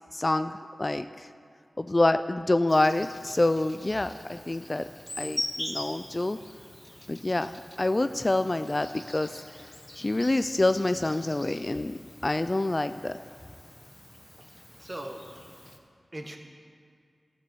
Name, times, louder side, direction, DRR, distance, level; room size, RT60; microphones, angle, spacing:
voice 1, 0.1-0.5 0.8-1.3 1.8-4.8 5.2-6.4 7.1-9.3 10.0-13.1, left 2 dB, 35° left, 11 dB, 0.3 m, -27 dB
Insect, 2.7-15.8, left 1 dB, 20° left, 1.1 m, -42 dB
voice 2, 14.4-15.2 16.1-16.4, right 1 dB, 30° right, 3 dB, 1.4 m, -40 dB
13.0 x 6.7 x 6.2 m, 2.2 s
cardioid pair, 45°, 0 cm